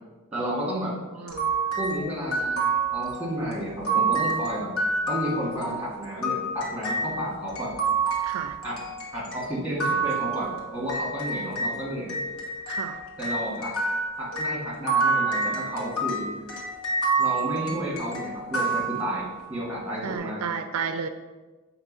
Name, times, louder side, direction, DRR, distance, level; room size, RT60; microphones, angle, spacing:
voice 1, 0.3-1.0 1.8-4.7 5.1-7.7 8.6-8.8 9.1-12.1 13.2-13.7 14.2-16.3 17.2-20.4, equal, 5° right, -5 dB, 1.9 m, -31 dB
sound 1, 1.3-11.8 12.1-19.5, right 3 dB, 70° left, 1.4 m, -28 dB
voice 2, 8.2-8.6 12.7-13.0 20.0-21.1, right 6 dB, 75° right, 9 dB, 0.4 m, -32 dB
7.1 x 3.0 x 5.4 m, 1.3 s
head